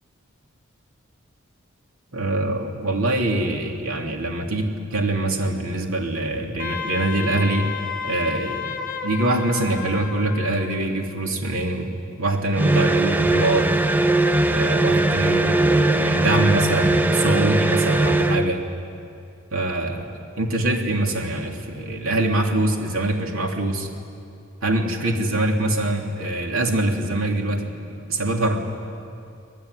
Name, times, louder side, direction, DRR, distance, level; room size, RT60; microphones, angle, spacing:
voice 1, 2.1-7.7 8.0-8.6 9.0-13.7 14.4-18.6 19.5-20.1 20.4-23.9 24.6-28.6, right 2 dB, 75° right, 2 dB, 3.2 m, -24 dB
Wind instrument woodwind instrument, 6.6-10.8, left 6 dB, 40° left, 1.3 m, -32 dB
sound 1, 12.5-18.5, right 2 dB, 10° right, 0.5 m, -20 dB
25.5 x 19.0 x 9.9 m, 2.5 s
head